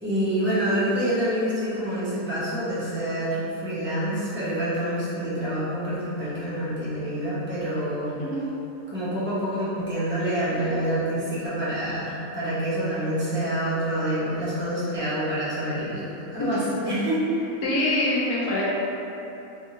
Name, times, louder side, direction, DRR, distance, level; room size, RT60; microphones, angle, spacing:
voice 1, 0.0-8.2 8.9-17.5, right 1 dB, 15° right, -11 dB, 0.4 m, -27 dB
voice 2, 17.6-18.6, left 1 dB, 75° left, -6 dB, 1.1 m, -25 dB
3.5 x 2.7 x 2.8 m, 2.9 s
omnidirectional pair, 1.7 m